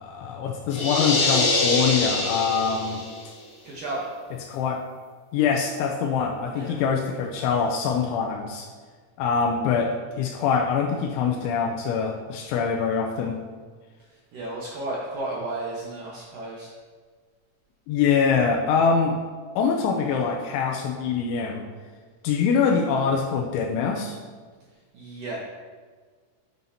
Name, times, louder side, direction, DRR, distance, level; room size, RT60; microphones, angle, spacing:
voice 1, 0.0-3.0 4.5-4.8 5.3-8.7 9.2-13.4 17.9-19.2 19.6-21.6 22.2-24.2, left 6 dB, 85° left, 3 dB, 2.8 m, -24 dB
sound 1, 0.7-3.2, left 2 dB, 50° left, 2.6 m, -24 dB
voice 2, 3.6-4.1 6.5-6.8 14.3-16.7 24.9-25.4, right 2 dB, 80° right, -5 dB, 1.9 m, -33 dB
9.5 x 9.4 x 2.8 m, 1.5 s
omnidirectional pair, 5.8 m